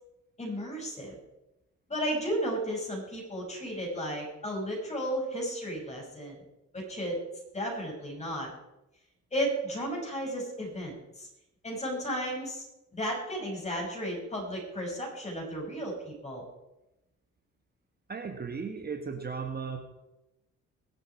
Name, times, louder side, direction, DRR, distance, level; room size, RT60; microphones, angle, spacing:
voice 1, 0.4-1.2 1.9-6.4 6.7-7.2 7.5-8.5 9.3-11.3 11.6-12.7 12.9-16.4, equal, 20° left, -1 dB, 6.3 m, -34 dB
voice 2, 18.1-19.8, right 5 dB, 30° right, 4 dB, 1.5 m, -36 dB
23.0 x 7.9 x 4.6 m, 0.95 s
cardioid pair, 90°, 30 cm